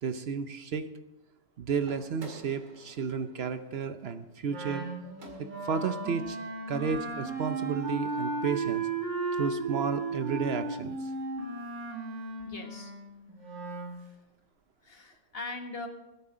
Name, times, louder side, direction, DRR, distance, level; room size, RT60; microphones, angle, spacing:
voice 1, 0.0-0.9 1.6-4.9 5.4-6.4 6.7-8.9 9.4-11.0, right 6 dB, 65° right, 10 dB, 0.6 m, -32 dB
sound 1, 1.8-5.9, right 3 dB, 45° right, 2.4 m, -51 dB
Wind instrument woodwind instrument, 4.5-14.0, right 3 dB, 85° right, 2.9 m, -35 dB
voice 2, 12.4-12.9 14.0-14.1 14.8-15.9, left 3 dB, 35° left, 3 dB, 1.7 m, -41 dB
22.0 x 9.8 x 3.8 m, 0.95 s
omnidirectional pair, 1.9 m